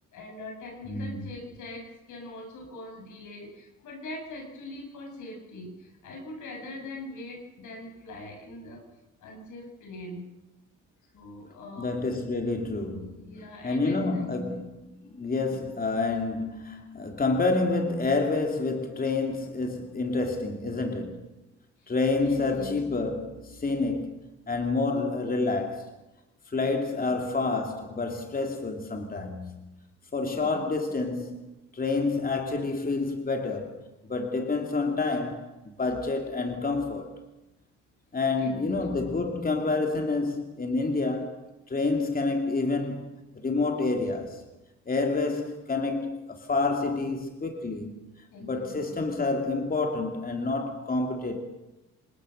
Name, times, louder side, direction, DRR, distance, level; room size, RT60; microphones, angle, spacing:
voice 1, 0.1-8.8 9.2-10.3 11.1-12.0 13.1-14.3 15.5-15.7 19.9-20.2 21.8-21.9 22.2-22.8 26.9-27.2 30.2-30.8 38.4-38.8 48.3-49.0, left 1 dB, 80° left, 7.6 m, -42 dB
voice 2, 0.9-1.2 11.8-21.2 21.9-24.1 24.5-25.9 26.5-29.4 30.1-31.4 31.7-33.7 34.1-35.5 35.8-37.1 38.1-43.1 43.4-44.4 44.9-48.0 48.4-51.4, left 3 dB, 30° left, 2.9 m, -28 dB
27.0 x 20.5 x 6.6 m
cardioid pair, 90°, 30 cm